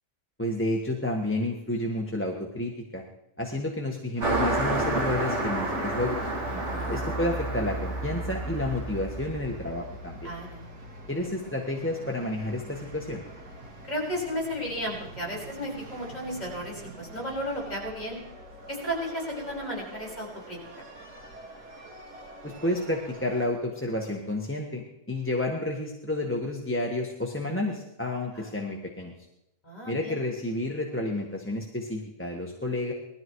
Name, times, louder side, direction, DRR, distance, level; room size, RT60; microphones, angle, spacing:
voice 1, 0.4-3.0 3.4-6.3 6.9-10.3 11.1-13.2 22.4-24.8 25.1-29.1 29.9-32.9, left 1 dB, 10° left, 0 dB, 1.4 m, -30 dB
sound 1, 4.1-23.5, right 1 dB, 85° right, 2.8 m, -45 dB
Car passing by, 4.2-10.0, right 2 dB, 50° right, 2.5 m, -30 dB
voice 2, 6.5-6.9 10.2-10.7 13.9-18.2 18.7-20.6 28.3-28.5 29.6-30.2, equal, 25° left, -2 dB, 5.5 m, -34 dB
19.0 x 13.5 x 4.7 m, 0.85 s
omnidirectional pair, 1.6 m